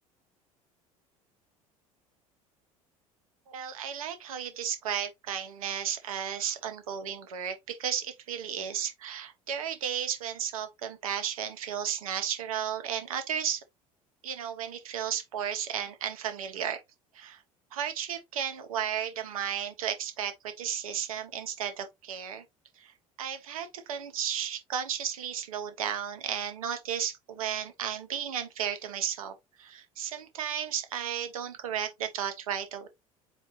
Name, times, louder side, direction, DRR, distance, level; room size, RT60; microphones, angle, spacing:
voice 1, 3.5-13.6 14.2-16.8 17.1-17.4 17.7-22.4 22.8-32.9, right 9 dB, 80° right, 0.9 m, -34 dB
4.4 x 2.5 x 4.0 m
hypercardioid pair, 65°, 18 cm